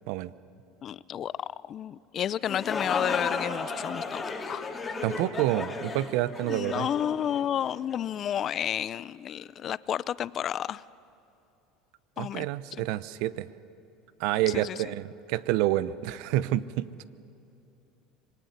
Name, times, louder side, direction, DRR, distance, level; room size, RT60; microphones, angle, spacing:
voice 1, 0.8-1.3 1.7-4.7 6.5-10.8 12.2-12.5 12.8-12.9 14.5-14.8, left 10 dB, 45° left, 19 dB, 0.6 m, -31 dB
sound 1, 2.3-8.0, left 4 dB, 20° left, 3.1 m, -35 dB
voice 2, 5.0-6.9 12.2-13.5 14.2-17.0, right 15 dB, 70° right, 17 dB, 0.8 m, -28 dB
26.0 x 20.5 x 9.5 m, 2.8 s
supercardioid pair, 100°, 0 cm